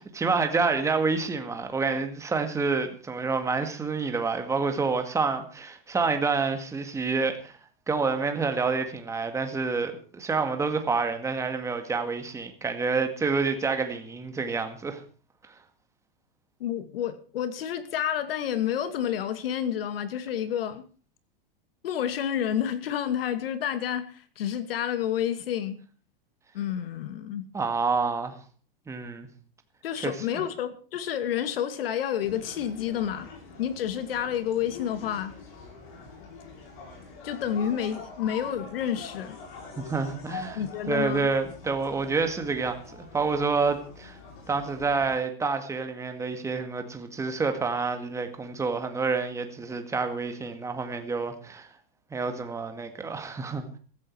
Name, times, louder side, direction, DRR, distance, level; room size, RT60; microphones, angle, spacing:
voice 1, 0.0-7.6 7.9-15.0 27.5-28.3 28.9-29.3 30.0-30.4 39.8-40.6 40.9-44.2 44.5-51.7 52.1-53.8, right 4 dB, 10° right, 2.0 m, -28 dB
voice 2, 16.6-20.8 21.8-25.8 26.5-27.5 29.8-33.3 33.6-35.3 37.2-39.4 40.5-41.3, left 9 dB, 75° left, 2.4 m, -29 dB
sound 1, 32.2-45.2, left 4 dB, 55° left, 7.0 m, -45 dB
16.0 x 14.0 x 4.7 m
supercardioid pair, 145°, 29 cm